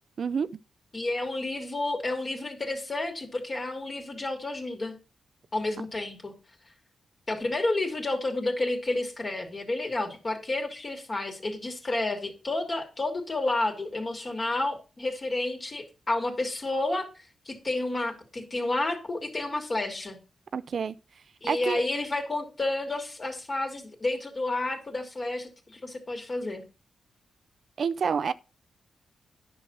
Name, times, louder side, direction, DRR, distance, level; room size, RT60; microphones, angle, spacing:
voice 1, 0.2-0.6 20.5-21.0 21.5-21.8 27.8-28.3, right 6 dB, 65° right, 0.5 m, -28 dB
voice 2, 0.9-4.9 5.5-6.3 7.3-17.1 17.5-20.2 21.4-26.6, left 2 dB, 40° left, 2.6 m, -30 dB
10.0 x 5.8 x 5.4 m
cardioid pair, 65°, 0 cm